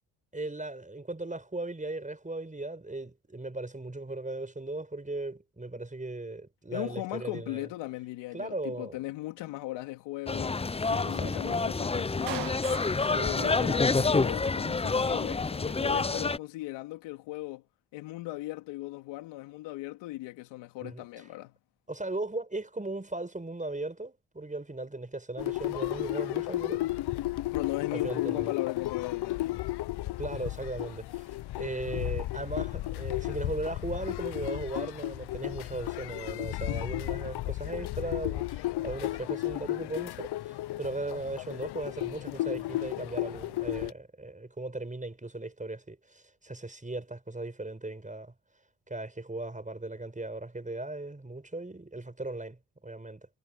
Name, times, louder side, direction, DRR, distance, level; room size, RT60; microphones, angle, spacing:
voice 1, 0.3-7.7 8.3-9.0 11.0-11.5 13.1-14.4 20.8-21.0 21.9-26.9 27.9-28.5 30.2-48.3 48.9-53.3, right 2 dB, 20° right, 5.9 m, -37 dB
voice 2, 6.7-10.6 10.9-12.6 13.1-17.6 17.9-21.5 27.5-29.7, left 18 dB, 85° left, 3.4 m, -38 dB
sound 1, 10.3-16.4, left 4 dB, 15° left, 0.6 m, -28 dB
Clapping, 12.3-14.3, right 17 dB, 80° right, 1.0 m, -41 dB
Playa del Carmen band warming up, 25.4-43.9, left 17 dB, 65° left, 0.8 m, -34 dB
supercardioid pair, 50°, 42 cm